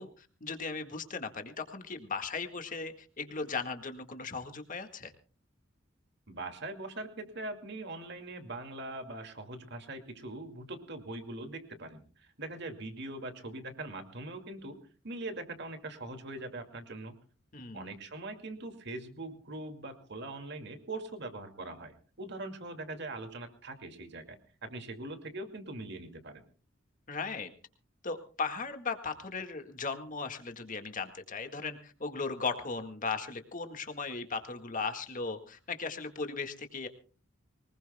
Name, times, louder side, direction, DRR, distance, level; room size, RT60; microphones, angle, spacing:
voice 1, 0.0-5.1 17.5-17.9 27.1-27.5 28.0-36.9, left 4 dB, 45° left, 7 dB, 1.8 m, -37 dB
voice 2, 6.3-14.8 15.0-17.1 17.7-26.4, right 2 dB, 60° right, 6 dB, 2.3 m, -42 dB
23.5 x 20.0 x 2.3 m, 0.39 s
head